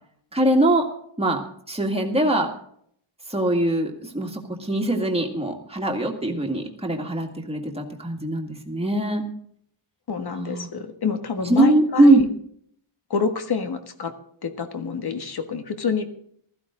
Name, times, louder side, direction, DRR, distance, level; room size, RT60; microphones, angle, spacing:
voice 1, 0.3-0.9 1.2-1.4 1.7-2.5 3.3-9.2 10.4-10.7 11.5-12.2, right 1 dB, 10° right, 1 dB, 2.0 m, -22 dB
voice 2, 10.1-12.2 13.1-14.1 14.4-16.1, left 5 dB, 50° left, 8 dB, 1.6 m, -27 dB
15.5 x 14.0 x 3.8 m, 0.65 s
wide cardioid pair, 170°, 49 cm